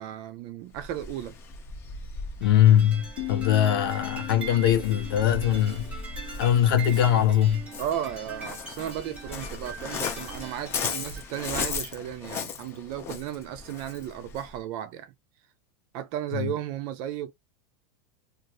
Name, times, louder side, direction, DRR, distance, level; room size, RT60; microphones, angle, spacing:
voice 1, 0.0-1.4 7.8-15.1 15.9-17.3, right 11 dB, 35° right, 0.4 m, -34 dB
Waves surf, 0.7-14.6, left 5 dB, 20° left, 0.5 m, -38 dB
voice 2, 2.4-5.9 6.4-7.7 16.3-16.5, left 10 dB, 85° left, 0.9 m, -21 dB
sound 1, 2.4-11.3, right 4 dB, 10° right, 0.9 m, -43 dB
sound 2, 3.2-7.1, left 18 dB, 55° left, 0.7 m, -39 dB
2.6 x 2.4 x 3.0 m
supercardioid pair, 175°, 12 cm